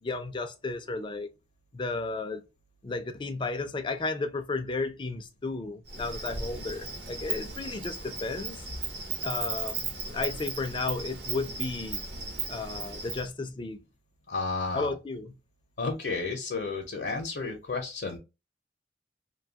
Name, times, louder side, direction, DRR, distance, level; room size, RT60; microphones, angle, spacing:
voice 1, 0.0-1.3 1.7-2.4 2.8-8.7 9.2-12.0 12.5-13.8 14.7-15.3, left 3 dB, 30° left, 0.4 m, -33 dB
Insect, 5.9-13.3, right 4 dB, 65° right, 0.9 m, -36 dB
voice 2, 14.3-14.9 15.8-18.2, left 3 dB, 65° left, 0.6 m, -32 dB
2.7 x 2.3 x 2.7 m
head